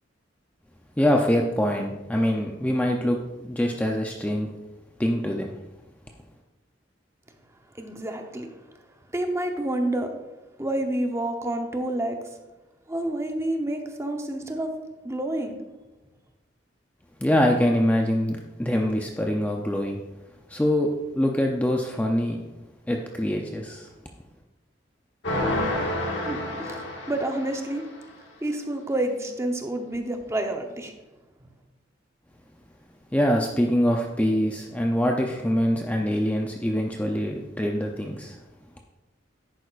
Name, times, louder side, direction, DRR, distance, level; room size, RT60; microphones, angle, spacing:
voice 1, 1.0-4.5 5.0-5.5 17.2-20.0 20.5-20.9 21.2-22.4 22.9-23.9 33.1-38.4, equal, 10° left, 1 dB, 0.5 m, -24 dB
voice 2, 7.7-8.5 9.1-10.1 10.6-12.2 12.9-14.7 15.0-15.6 26.2-26.8 27.1-27.8 28.4-30.9, right 1 dB, 15° right, 4 dB, 0.8 m, -28 dB
sound 1, 25.2-28.0, left 1 dB, 80° left, 1.6 m, -29 dB
10.5 x 9.0 x 2.4 m, 1.0 s
head